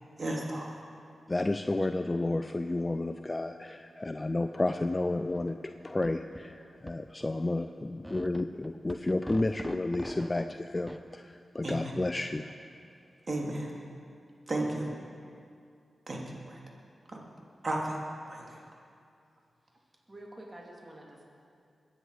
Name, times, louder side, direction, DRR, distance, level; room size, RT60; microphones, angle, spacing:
voice 1, 0.2-0.8 11.6-12.0 13.3-13.7 14.5-14.9 16.1-16.6 17.1-17.2 17.6-18.0 18.3-18.6, right 1 dB, 50° right, -1 dB, 2.9 m, -34 dB
voice 2, 1.3-12.5, left 2 dB, 30° left, 8 dB, 0.6 m, -31 dB
sound 1, 5.3-5.5 5.8-6.4 6.9-7.0 7.2-7.3 8.0-10.5 10.9-11.0, equal, 5° right, 0.8 m, -42 dB
voice 3, 19.7-21.2, right 1 dB, 25° right, -2 dB, 2.9 m, -49 dB
22.0 x 9.7 x 5.0 m, 2.4 s
cardioid pair, 45°, 0 cm